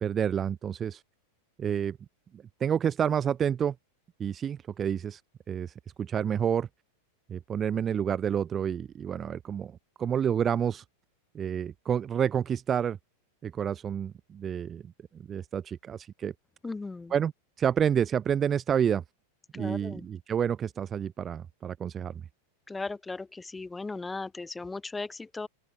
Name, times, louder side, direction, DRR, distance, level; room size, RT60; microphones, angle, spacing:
voice 1, 0.0-1.0 1.6-2.0 2.3-3.7 4.2-5.2 5.5-6.7 7.3-10.8 11.3-13.0 13.4-14.9 15.3-16.3 17.1-17.3 17.6-19.0 19.5-22.2, right 8 dB, 25° right, 0.3 m, -29 dB
voice 2, 16.6-17.1 19.5-20.1 22.7-25.5, left 3 dB, 10° left, 1.0 m, -37 dB
open air
figure-of-eight pair, 90°, 0 cm